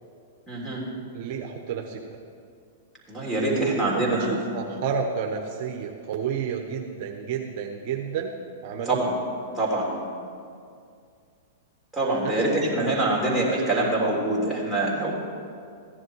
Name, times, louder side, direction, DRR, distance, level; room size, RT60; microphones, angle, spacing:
voice 1, 0.5-0.8 3.1-4.4 8.9-9.1 9.5-10.0 11.9-15.1, right 2 dB, ahead, -6 dB, 3.4 m, -25 dB
voice 2, 1.1-2.2 3.4-8.3 8.6-9.0 12.2-12.3, right 6 dB, 50° right, 3 dB, 1.0 m, -31 dB
15.0 x 10.5 x 4.8 m, 2.3 s
hypercardioid pair, 120°, 0 cm